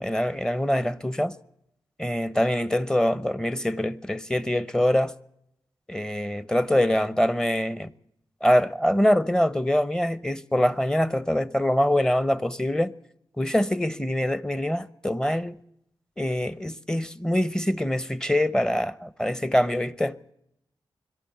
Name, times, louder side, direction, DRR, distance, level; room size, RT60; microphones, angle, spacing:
voice 1, 0.0-1.4 2.0-5.1 5.9-7.9 8.4-12.9 13.4-15.6 16.2-20.2, left 1 dB, 5° left, 0.9 m, -24 dB
22.5 x 12.5 x 9.3 m
cardioid pair, 75°, 8 cm